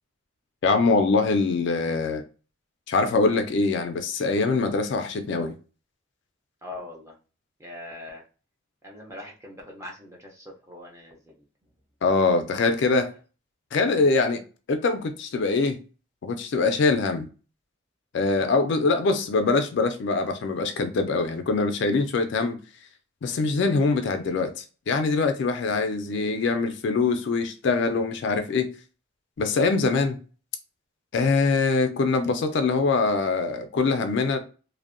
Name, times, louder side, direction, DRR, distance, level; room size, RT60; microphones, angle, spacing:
voice 1, 0.6-2.2 2.9-5.5 12.0-13.1 13.7-14.4 14.7-15.8 16.2-17.3 18.1-22.6 23.2-28.7 29.4-30.2 31.1-34.4, left 4 dB, 55° left, 0.3 m, -23 dB
voice 2, 6.6-7.2 7.6-8.2 8.8-11.5 18.4-18.6, left 1 dB, 15° right, 0.5 m, -42 dB
2.6 x 2.0 x 2.4 m
head